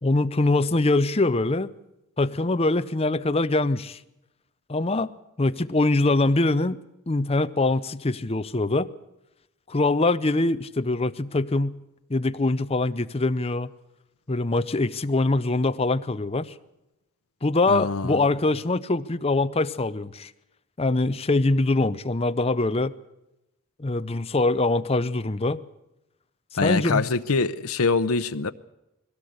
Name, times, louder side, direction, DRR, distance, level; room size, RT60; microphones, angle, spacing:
voice 1, 0.0-1.7 2.2-4.0 4.7-5.1 5.4-6.8 7.1-8.9 9.7-11.8 12.1-13.7 14.3-16.5 17.4-20.3 20.8-22.9 23.8-25.6 26.6-27.1, left 2 dB, 30° left, 0.7 m, -23 dB
voice 2, 17.7-18.2 26.6-28.5, left 4 dB, 80° left, 0.8 m, -24 dB
21.0 x 17.0 x 8.1 m
head